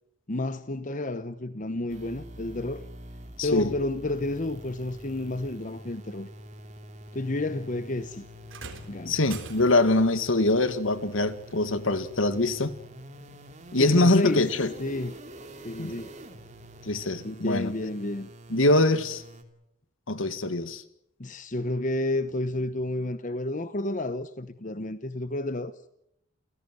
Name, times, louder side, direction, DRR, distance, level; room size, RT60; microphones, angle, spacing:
voice 1, 0.3-2.8 3.4-6.3 7.1-8.2 8.9-9.1 13.8-14.4 14.8-15.1 15.6-16.1 17.2-18.3 21.2-25.7, left 2 dB, 40° left, 1.0 m, -30 dB
sound 1, 1.9-19.4, equal, 35° right, 2.9 m, -46 dB
voice 2, 3.4-3.7 9.1-12.7 13.7-14.7 15.8-15.9 16.9-17.7 18.5-19.2 20.1-20.8, left 2 dB, 70° left, 2.0 m, -23 dB
sound 2, 8.5-10.0 11.5-11.6 12.5-12.6, right 4 dB, 70° right, 3.7 m, -43 dB
29.5 x 17.0 x 8.1 m
head